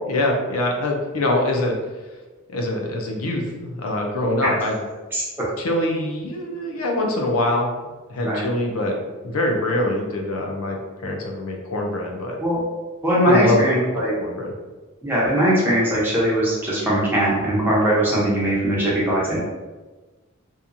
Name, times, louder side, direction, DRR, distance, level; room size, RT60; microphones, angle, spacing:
voice 1, 0.0-1.8 2.5-4.8 5.6-7.7 8.1-9.0 9.2-12.4 13.2-13.6 13.9-14.5, left 1 dB, 75° left, 1 dB, 0.5 m, -24 dB
voice 2, 13.0-14.1 15.0-19.4, right 1 dB, 10° right, -7 dB, 0.7 m, -20 dB
2.8 x 2.3 x 2.5 m, 1.2 s
head